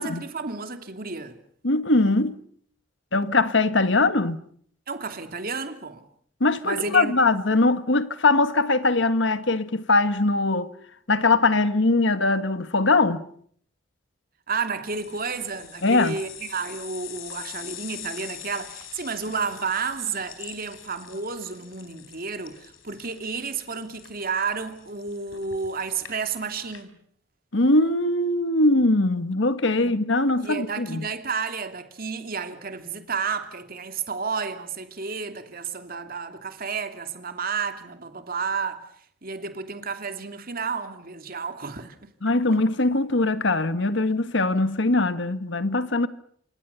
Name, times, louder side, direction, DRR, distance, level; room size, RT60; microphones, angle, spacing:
voice 1, 0.0-1.4 4.9-6.1 6.6-7.2 14.5-27.0 29.8-30.0 30.4-38.9 39.2-42.1, right 5 dB, 45° right, 2.8 m, -31 dB
voice 2, 1.6-2.4 3.1-4.4 6.4-10.7 11.1-13.2 15.8-16.2 27.5-31.1 42.2-46.1, left 2 dB, 60° left, 1.6 m, -21 dB
sound 1, 14.9-26.8, left 10 dB, 90° left, 4.2 m, -44 dB
28.5 x 26.5 x 7.0 m
head